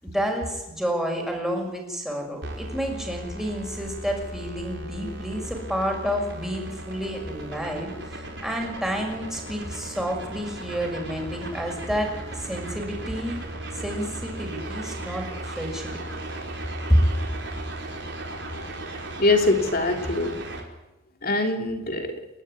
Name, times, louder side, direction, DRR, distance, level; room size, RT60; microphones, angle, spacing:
voice 1, 0.0-13.4 13.7-16.0 16.9-17.0, equal, 5° right, 1 dB, 6.2 m, -29 dB
sound 1, 2.4-20.6, right 1 dB, 70° right, 4.7 m, -36 dB
voice 2, 19.2-20.4 21.2-22.1, left 2 dB, 50° left, 4 dB, 3.3 m, -23 dB
29.0 x 12.5 x 9.7 m, 1.0 s
head